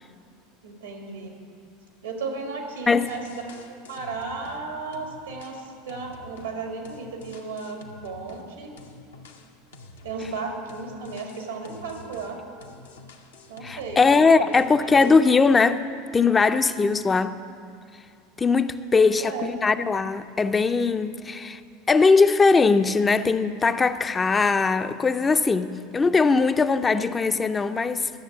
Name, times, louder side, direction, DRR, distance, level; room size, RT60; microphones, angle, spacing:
voice 1, 0.6-1.4 2.0-3.5 3.9-8.7 10.0-12.4 13.5-15.0 19.0-19.5, right 4 dB, 85° right, 2.0 m, -35 dB
sound 1, 2.7-2.8 3.0-4.6 4.9-8.5 8.8-14.3 14.5-15.3, left 2 dB, 90° left, 1.0 m, -48 dB
voice 2, 13.6-15.8 16.1-17.4 18.4-21.6 21.9-28.1, left 4 dB, 20° left, 0.4 m, -20 dB
11.5 x 7.1 x 7.4 m
hypercardioid pair, 85°, 0 cm